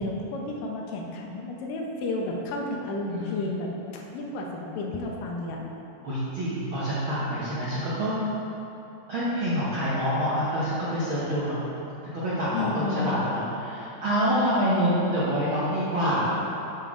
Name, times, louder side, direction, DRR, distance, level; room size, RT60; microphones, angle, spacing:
voice 1, 0.0-5.6 12.5-13.2, left 2 dB, 80° left, 0 dB, 2.4 m, -32 dB
voice 2, 3.1-3.5 6.0-8.1 9.1-11.6 12.1-16.4, equal, 65° right, -11 dB, 1.3 m, -26 dB
7.5 x 6.9 x 3.7 m, 2.9 s
omnidirectional pair, 3.9 m